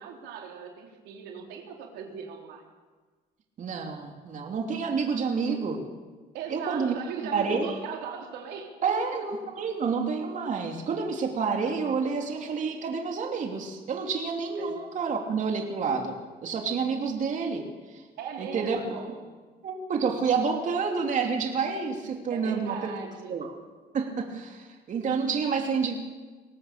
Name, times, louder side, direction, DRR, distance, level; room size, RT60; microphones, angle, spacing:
voice 1, 0.0-2.6 6.3-8.7 14.6-14.8 18.2-19.2 22.3-23.4, right 7 dB, 85° right, 1 dB, 3.8 m, -38 dB
voice 2, 3.6-5.8 6.5-6.9 7.3-7.7 8.8-18.0 18.4-18.8 19.6-22.9 23.3-23.5 23.9-26.0, right 5 dB, 50° right, 2 dB, 3.0 m, -29 dB
22.5 x 18.0 x 6.9 m, 1.4 s
cardioid pair, 110°, 17 cm